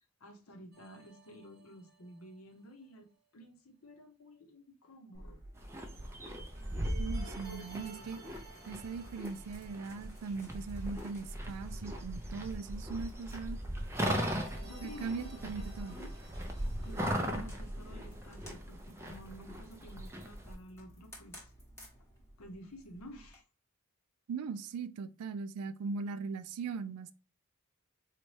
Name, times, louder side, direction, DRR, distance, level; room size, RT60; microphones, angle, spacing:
voice 1, 0.2-3.1 3.3-5.4 7.5-8.2 14.6-16.2 16.8-21.5 22.4-23.4, equal, 70° left, 0.7 m, -52 dB
sound 1, 0.7-2.6 6.6-10.9 11.2-11.3 13.7-17.0, right 4 dB, 45° right, 0.8 m, -55 dB
sound 2, 5.1-23.4, equal, 10° left, 0.9 m, -56 dB
sound 3, 5.6-20.5, equal, 10° right, 0.4 m, -39 dB
voice 2, 7.0-8.2 8.7-13.6 14.8-16.0 24.3-27.1, right 5 dB, 85° right, 0.4 m, -40 dB
4.0 x 2.2 x 3.1 m
head